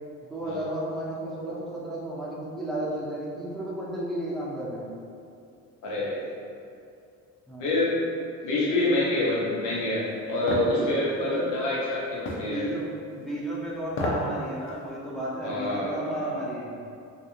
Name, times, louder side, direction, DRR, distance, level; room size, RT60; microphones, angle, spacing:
voice 1, 0.3-4.9 7.5-7.7 10.6-11.5 12.2-16.8, right 1 dB, ahead, -7 dB, 0.6 m, -33 dB
voice 2, 5.8-6.2 7.6-7.9 8.4-12.6 15.4-16.3, left 2 dB, 90° left, -7 dB, 0.7 m, -27 dB
sound 1, 10.5-10.7 12.3-12.5 13.9-14.3 14.7-14.8, left 1 dB, 45° left, 0.5 m, -29 dB
2.4 x 2.2 x 2.9 m, 2.4 s
cardioid pair, 90°, 30 cm